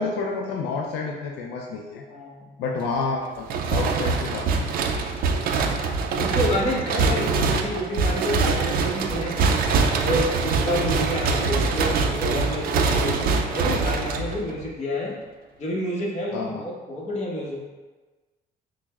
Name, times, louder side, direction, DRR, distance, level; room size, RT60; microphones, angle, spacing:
voice 1, 0.0-2.0 2.6-4.5 16.3-16.6, left 4 dB, 85° left, 0 dB, 0.4 m, -29 dB
voice 2, 2.1-2.5 5.5-5.8 6.2-9.5 10.0-15.1 15.6-17.6, left 1 dB, 45° left, -4 dB, 1.1 m, -29 dB
sound 1, 3.5-14.7, right 4 dB, 60° right, 0.4 m, -24 dB
6.0 x 2.0 x 2.3 m, 1.3 s
cardioid pair, 110°, 17 cm